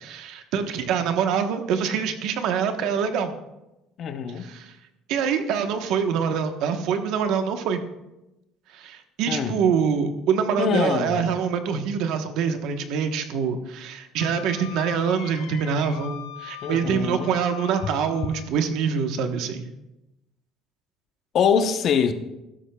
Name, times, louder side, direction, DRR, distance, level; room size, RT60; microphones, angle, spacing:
voice 1, 0.0-3.3 4.3-4.7 5.1-7.8 8.7-19.7, right 7 dB, 65° right, 7 dB, 1.1 m, -25 dB
voice 2, 4.0-4.5 9.3-9.7 10.6-11.2 16.6-17.3 21.3-22.1, left 6 dB, 40° left, 8 dB, 0.9 m, -23 dB
Wind instrument woodwind instrument, 14.2-18.5, left 11 dB, 75° left, 0.8 m, -41 dB
16.0 x 12.5 x 2.3 m, 0.95 s
cardioid pair, 150°, 0 cm